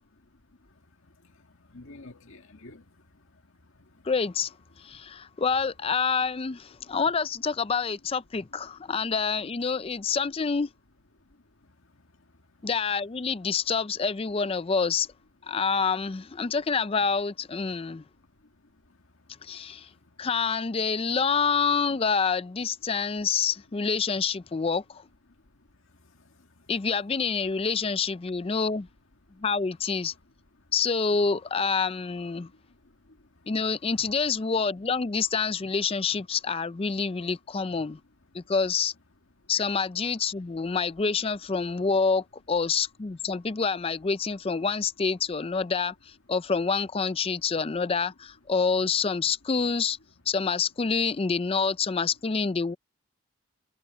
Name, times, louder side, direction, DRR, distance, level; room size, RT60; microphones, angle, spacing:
voice 1, 0.1-4.1 4.9-5.4 6.8-7.0 8.7-9.0 9.7-10.0 11.1-12.7 17.7-20.3 25.3-26.7 27.3-27.4 27.8-28.0 29.3-29.4 30.1-30.2 30.5-30.7 32.4-34.1 38.3-38.5 39.4-39.8, left 2 dB, 70° left, 1.9 m, -56 dB
voice 2, 4.0-10.7 12.6-15.1 15.5-18.0 19.4-19.9 20.2-25.0 26.7-28.9 29.4-30.1 30.7-32.5 33.5-38.0 38.3-38.9 39.5-50.0 50.3-52.8, left 5 dB, 25° left, 0.4 m, -27 dB
head